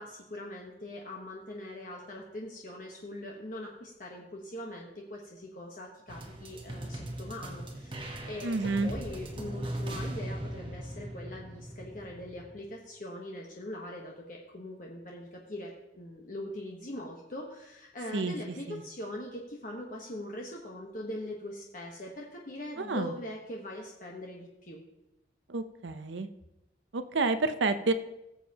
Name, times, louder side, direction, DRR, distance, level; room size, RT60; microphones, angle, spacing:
voice 1, 0.0-24.8, left 1 dB, 45° left, -1 dB, 1.1 m, -42 dB
sound 1, 6.1-12.6, right 1 dB, 30° right, 1.2 m, -39 dB
voice 2, 8.4-8.9 18.1-18.3 18.7-18.8 22.8-23.1 25.5-26.3 26.9-27.9, right 3 dB, 90° right, 10 dB, 0.7 m, -29 dB
19.5 x 7.4 x 2.9 m, 0.93 s
head